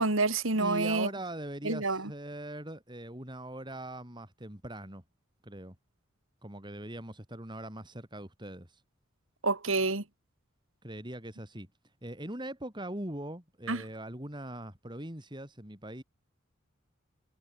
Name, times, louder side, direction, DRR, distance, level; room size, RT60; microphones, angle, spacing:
voice 1, 0.0-1.1 1.6-2.1 9.4-10.0 13.7-13.8, right 3 dB, 75° right, 2.8 m, -28 dB
voice 2, 0.5-5.0 5.4-5.8 6.4-8.7 10.8-11.7 12.0-16.0, right 1 dB, 20° right, 4.5 m, -41 dB
head